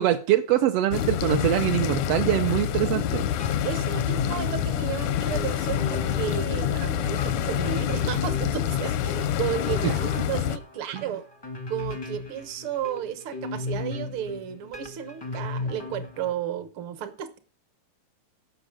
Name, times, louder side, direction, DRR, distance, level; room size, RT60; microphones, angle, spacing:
voice 1, 0.0-3.3 9.8-9.9 10.9-11.0, right 13 dB, 75° right, 1.4 m, -23 dB
sound 1, 0.9-10.6, left 10 dB, 85° left, 2.3 m, -27 dB
sound 2, 3.4-16.3, left 2 dB, 25° left, 0.5 m, -37 dB
voice 2, 3.6-11.3 11.7-17.4, right 9 dB, 60° right, 1.6 m, -33 dB
16.0 x 6.1 x 5.2 m
omnidirectional pair, 3.4 m